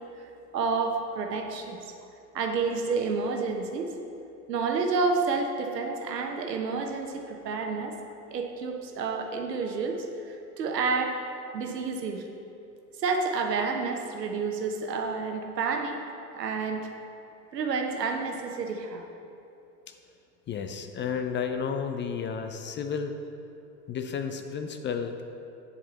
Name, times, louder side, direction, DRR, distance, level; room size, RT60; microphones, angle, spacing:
voice 1, 0.5-1.8 2.3-3.8 4.5-8.0 8.3-11.2 11.5-12.3 13.0-16.0 16.3-16.9 17.5-19.0, right 4 dB, 85° right, 3 dB, 1.1 m, -29 dB
voice 2, 20.5-23.1 23.9-25.2, left 6 dB, 25° left, 6 dB, 0.5 m, -32 dB
9.5 x 7.4 x 4.1 m, 2.7 s
hypercardioid pair, 80°, 48 cm